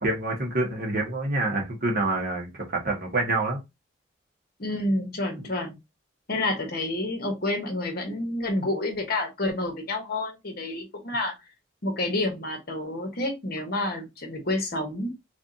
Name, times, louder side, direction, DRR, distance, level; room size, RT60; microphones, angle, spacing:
voice 1, 0.0-3.6, right 2 dB, 50° right, 1.4 m, -27 dB
voice 2, 4.6-5.8 6.3-11.3 11.8-15.1, left 2 dB, 50° left, 1.0 m, -29 dB
3.3 x 2.7 x 3.8 m
head